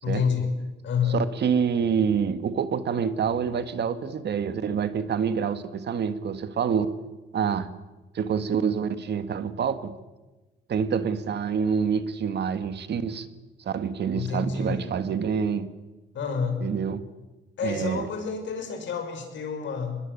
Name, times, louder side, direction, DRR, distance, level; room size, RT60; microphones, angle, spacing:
voice 1, 0.0-0.5 0.8-1.2 14.1-14.9 16.1-16.6 17.6-20.0, left 6 dB, 70° left, 5 dB, 6.2 m, -28 dB
voice 2, 1.1-6.9 7.3-7.7 8.1-9.9 10.7-13.3 13.6-15.7 16.6-17.0 17.6-18.1, right 7 dB, 60° right, 11 dB, 1.8 m, -27 dB
22.5 x 21.0 x 9.8 m, 1.1 s
cardioid pair, 90°, 20 cm